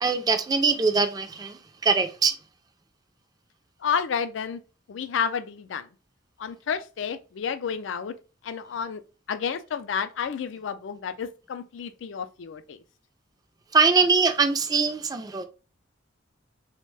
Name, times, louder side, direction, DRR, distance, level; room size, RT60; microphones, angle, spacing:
voice 1, 0.0-2.3 13.7-15.4, right 4 dB, 20° right, 0.3 m, -22 dB
voice 2, 3.8-4.6 4.9-5.9 6.4-8.1 8.4-9.0 9.3-12.8, left 6 dB, 75° left, 0.4 m, -30 dB
3.4 x 2.1 x 3.1 m
head